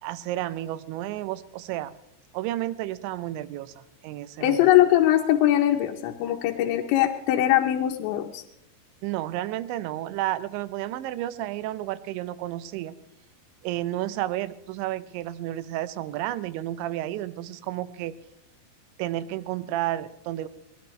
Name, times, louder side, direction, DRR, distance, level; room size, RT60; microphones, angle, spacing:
voice 1, 0.0-2.0 2.3-4.7 9.0-13.0 13.6-18.2 19.0-20.5, right 14 dB, 85° right, 15 dB, 3.0 m, -31 dB
voice 2, 4.4-8.4, left 13 dB, 80° left, 1 dB, 3.1 m, -21 dB
22.0 x 19.5 x 3.2 m, 0.80 s
omnidirectional pair, 5.2 m